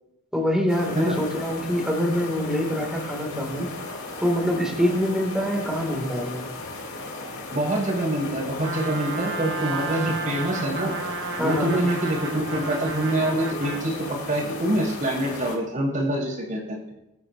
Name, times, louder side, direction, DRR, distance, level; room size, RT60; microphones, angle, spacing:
voice 1, 0.3-3.7 4.2-6.5 11.4-11.9, equal, 5° right, -2 dB, 3.4 m, -25 dB
sound 1, 0.7-15.6, left 2 dB, 90° left, 4.6 m, -36 dB
voice 2, 7.5-10.9 11.4-16.9, right 1 dB, 40° right, -4 dB, 5.7 m, -25 dB
Trumpet, 8.6-13.9, right 4 dB, 60° right, 1.6 m, -33 dB
26.0 x 13.0 x 3.1 m, 0.96 s
head